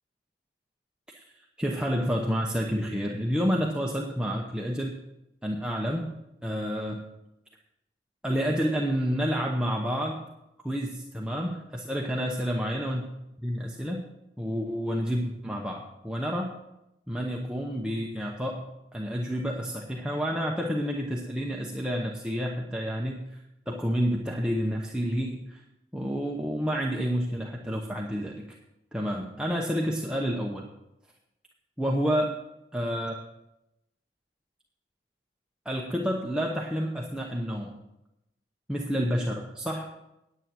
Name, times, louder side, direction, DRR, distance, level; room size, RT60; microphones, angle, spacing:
voice 1, 1.6-5.0 5.4-6.1 6.4-7.0 8.2-10.3 10.6-13.1 13.4-14.1 14.4-16.6 17.1-23.4 23.7-25.6 25.9-28.6 28.9-30.7 31.8-32.4 32.7-33.1 35.6-37.8 38.7-39.8, equal, 5° right, -1 dB, 0.8 m, -29 dB
9.8 x 8.9 x 6.2 m, 0.89 s
head